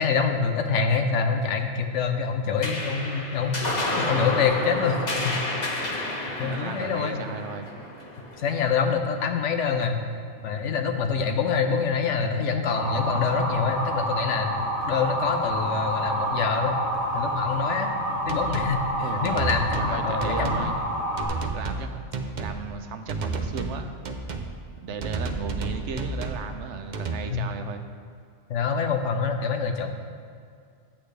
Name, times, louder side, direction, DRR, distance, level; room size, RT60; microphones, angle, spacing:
voice 1, 0.0-3.6 4.0-5.3 6.4-7.2 8.4-10.0 10.4-16.8 17.1-17.9 18.3-20.7 27.3-27.5 28.5-29.9, left 5 dB, 90° left, 5 dB, 1.1 m, -26 dB
sound 1, 2.6-9.4, left 1 dB, 40° left, 1.1 m, -31 dB
voice 2, 6.4-7.7 19.0-20.8 21.5-22.0 22.4-23.9 24.8-27.9, right 5 dB, 80° right, 7 dB, 1.0 m, -35 dB
Motor vehicle (road) / Siren, 12.7-21.2, equal, 70° left, 1.7 m, -28 dB
sound 2, 18.3-18.7 19.2-19.9 20.2-20.7 21.2-21.9 22.1-22.6 23.1-23.8 24.0-24.5 25.0-26.5 26.9-27.2, right 4 dB, 50° right, 0.6 m, -31 dB
10.0 x 8.6 x 3.3 m, 2.3 s
omnidirectional pair, 1.2 m